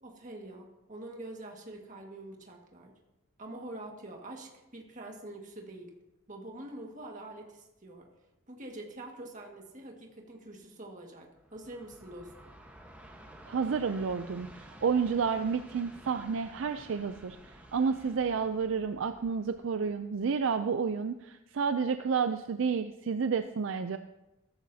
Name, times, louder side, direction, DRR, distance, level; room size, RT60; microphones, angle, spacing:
voice 1, 0.0-2.9 3.4-5.9 6.3-8.1 8.5-12.6, right 1 dB, 35° right, 1 dB, 1.8 m, -45 dB
Train, 11.4-20.6, right 1 dB, 5° right, 1.2 m, -52 dB
voice 2, 13.5-24.0, right 5 dB, 65° right, 9 dB, 0.4 m, -30 dB
14.5 x 13.5 x 2.8 m, 0.96 s
head